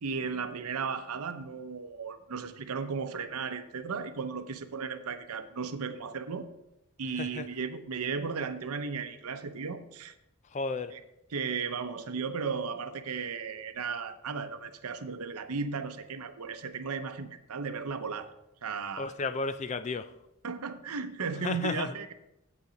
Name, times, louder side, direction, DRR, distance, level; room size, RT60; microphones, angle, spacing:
voice 1, 0.0-6.5 7.0-10.1 10.9-11.0 11.3-18.3 18.6-19.1 20.4-22.1, right 5 dB, 85° right, 0.7 m, -35 dB
voice 2, 10.5-10.9 19.0-20.1 21.4-21.9, left 3 dB, 30° left, 0.3 m, -33 dB
8.4 x 8.0 x 3.9 m
head